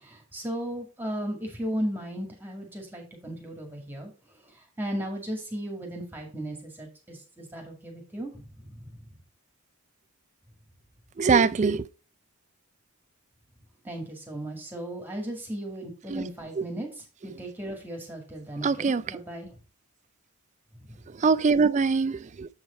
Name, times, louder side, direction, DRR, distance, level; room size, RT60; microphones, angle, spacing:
voice 1, 0.0-4.1 4.5-9.0 13.8-19.5 20.9-21.0, right 1 dB, 10° right, 1.9 m, -36 dB
voice 2, 11.2-11.8 16.1-16.2 18.6-19.0 21.2-22.5, right 5 dB, 30° right, 0.3 m, -22 dB
7.5 x 4.8 x 4.3 m
head